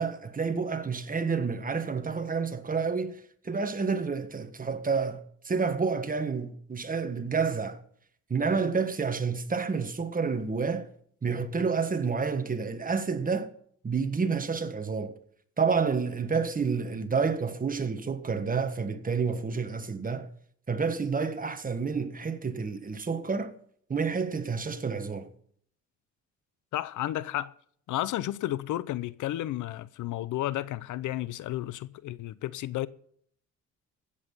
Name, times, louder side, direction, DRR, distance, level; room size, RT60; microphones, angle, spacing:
voice 1, 0.0-7.8 8.3-10.9 11.2-13.5 13.8-15.2 15.6-20.3 20.7-23.5 23.9-25.3, right 5 dB, 30° right, 1.5 m, -29 dB
voice 2, 26.7-27.5 27.9-32.9, left 14 dB, 80° left, 0.7 m, -32 dB
15.5 x 8.6 x 5.5 m
cardioid pair, 90°, 30 cm